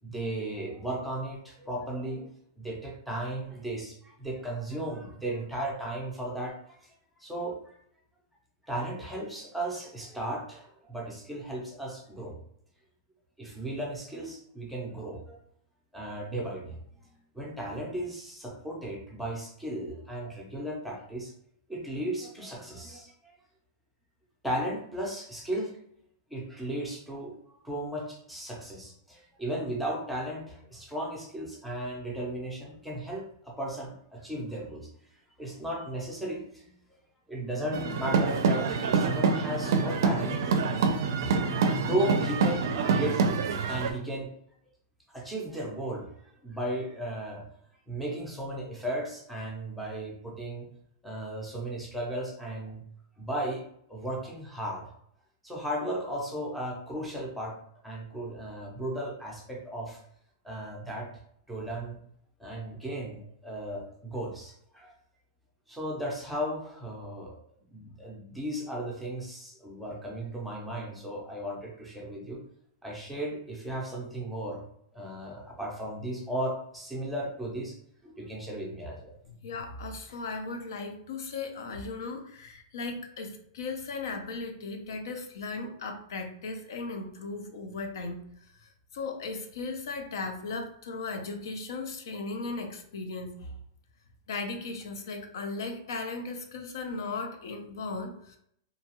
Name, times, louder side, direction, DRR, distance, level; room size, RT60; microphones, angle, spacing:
voice 1, 0.0-2.3 2.6-6.9 7.2-7.7 8.6-12.4 13.4-15.4 15.9-16.8 17.3-21.3 21.7-23.3 24.4-25.7 26.3-34.9 35.4-36.7 37.3-40.4 41.2-44.3 45.1-47.4 47.9-50.7 51.0-52.8 53.2-53.6 53.9-54.8 55.4-57.6 57.8-60.0 60.4-61.1 61.5-62.0 62.4-64.9 65.7-67.4 67.7-72.4 72.8-74.6 74.9-77.8 78.0-79.2, right 1 dB, ahead, -3 dB, 0.5 m, -35 dB
sound 1, 37.7-43.9, right 5 dB, 65° right, 0.4 m, -26 dB
voice 2, 79.4-88.2 88.6-93.5 94.3-98.4, left 3 dB, 70° left, 5 dB, 0.5 m, -37 dB
2.7 x 2.3 x 2.9 m, 0.69 s
supercardioid pair, 170°, 2 cm